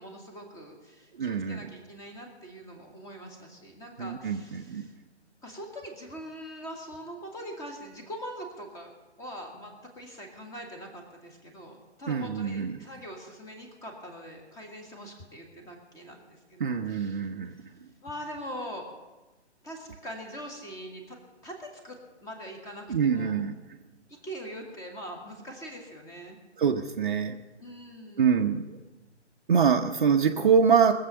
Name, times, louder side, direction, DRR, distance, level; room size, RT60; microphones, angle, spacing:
voice 1, 0.0-4.9 5.4-8.9 9.2-17.2 18.0-18.9 19.6-21.2 21.4-23.4 24.1-26.4 27.6-28.4, equal, 10° left, 3 dB, 1.7 m, -42 dB
voice 2, 1.2-1.7 4.0-4.9 12.1-12.8 16.6-17.5 22.9-23.5 26.6-27.4 28.2-28.8 29.5-30.9, right 6 dB, 45° right, 3 dB, 0.8 m, -24 dB
21.0 x 7.5 x 6.8 m, 1.2 s
figure-of-eight pair, 135°, 35 cm